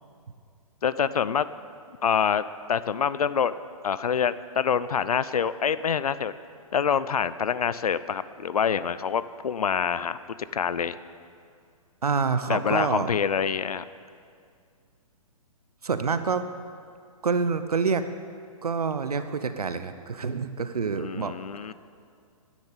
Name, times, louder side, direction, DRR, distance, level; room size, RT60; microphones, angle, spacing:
voice 1, 0.8-1.5 2.0-3.6 3.8-6.3 6.7-10.2 10.5-11.0 12.5-13.9 21.0-21.7, left 7 dB, 80° left, 15 dB, 0.5 m, -26 dB
voice 2, 12.0-13.1 15.8-16.5 17.2-18.0 18.6-21.4, right 5 dB, 85° right, 10 dB, 0.8 m, -27 dB
10.5 x 10.0 x 8.4 m, 2.2 s
hypercardioid pair, 130°, 19 cm